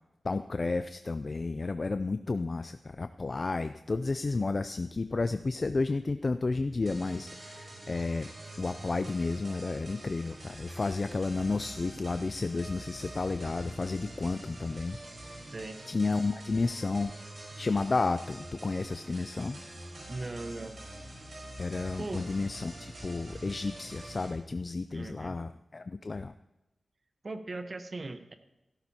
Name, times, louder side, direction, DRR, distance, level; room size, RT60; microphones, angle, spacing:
voice 1, 0.2-8.3 8.6-15.0 15.9-17.1 17.6-19.6 21.6-26.3, left 3 dB, 45° left, 10 dB, 0.4 m, -32 dB
sound 1, 6.8-24.3, right 1 dB, 65° right, 4.7 m, -45 dB
voice 2, 20.1-21.0 22.0-22.3 24.9-25.4 27.2-28.3, right 2 dB, 45° right, 8 dB, 1.1 m, -39 dB
16.0 x 13.5 x 2.9 m, 0.97 s
wide cardioid pair, 75°, 0 cm